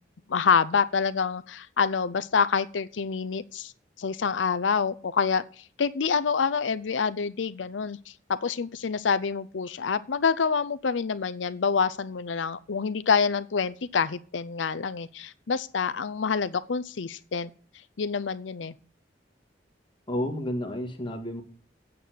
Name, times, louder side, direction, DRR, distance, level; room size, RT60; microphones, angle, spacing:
voice 1, 0.3-3.7 4.0-17.5 18.0-18.7, left 5 dB, 90° left, 0.6 m, -27 dB
voice 2, 20.1-21.4, left 1 dB, 30° left, 1.9 m, -31 dB
8.9 x 6.8 x 7.8 m
head